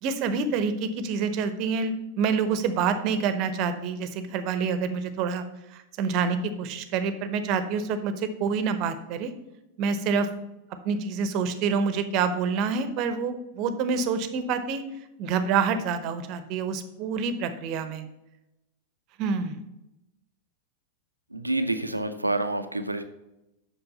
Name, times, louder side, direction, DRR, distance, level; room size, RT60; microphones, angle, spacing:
voice 1, 0.0-5.4 5.7-9.3 9.8-10.3 10.8-14.8 15.2-18.1 19.2-19.6, right 5 dB, 40° right, 11 dB, 0.9 m, -27 dB
voice 2, 21.3-23.0, right 2 dB, 85° right, 9 dB, 0.6 m, -28 dB
8.0 x 6.1 x 5.4 m, 0.93 s
figure-of-eight pair, 90°, 0 cm